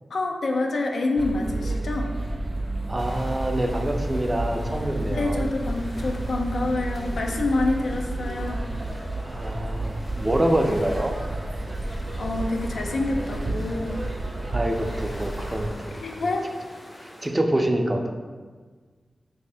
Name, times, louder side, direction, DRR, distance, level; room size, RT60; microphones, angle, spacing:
voice 1, 0.1-2.1 5.1-8.7 11.8-14.0 16.0-16.5, left 2 dB, 80° left, 2 dB, 0.4 m, -27 dB
sound 1, 1.2-15.7, right 2 dB, 55° right, 0.7 m, -31 dB
voice 2, 2.9-5.5 9.3-11.1 14.5-16.0 17.2-18.1, right 1 dB, 25° right, 3 dB, 0.4 m, -26 dB
sound 2, 3.0-17.3, left 1 dB, 45° left, 0.7 m, -45 dB
3.2 x 2.7 x 3.4 m, 1.5 s
cardioid pair, 45°, 0 cm